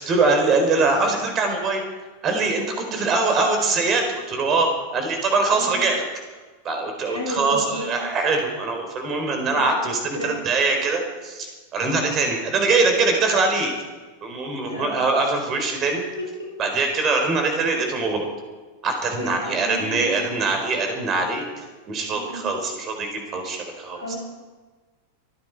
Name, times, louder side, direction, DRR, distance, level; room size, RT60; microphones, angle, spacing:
voice 1, 0.0-1.8 2.2-6.0 6.6-13.7 14.2-16.0 16.6-18.2 18.8-24.1, right 3 dB, 30° right, 4 dB, 4.3 m, -23 dB
voice 2, 5.5-5.8 7.0-7.9 9.5-9.7 10.1-10.4 14.6-15.0 16.2-16.5 17.8-18.0 19.2-20.3 22.1-22.4 23.9-24.1, left 1 dB, 85° right, -1 dB, 4.7 m, -33 dB
26.5 x 10.0 x 4.8 m, 1.3 s
figure-of-eight pair, 90°, 0 cm